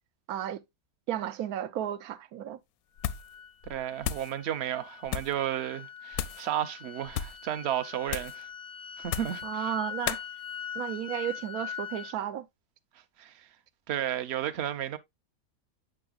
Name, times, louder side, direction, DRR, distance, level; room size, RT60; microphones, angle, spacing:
voice 1, 0.3-0.6 1.1-2.6 9.4-10.2 10.7-12.5, right 11 dB, 90° right, 1.2 m, -33 dB
sound 1, 3.0-3.4 3.6-4.3 5.0-5.4 6.1-6.5 7.1-7.4 8.1-8.4 9.0-9.4 10.1-10.3, left 10 dB, 85° left, 1.1 m, -34 dB
sound 2, 3.0-12.1, left 8 dB, 40° left, 0.5 m, -42 dB
voice 2, 3.7-8.5 9.0-9.7 13.2-13.5 13.9-15.0, right 11 dB, 55° right, 0.9 m, -33 dB
8.7 x 5.9 x 2.3 m
omnidirectional pair, 1.5 m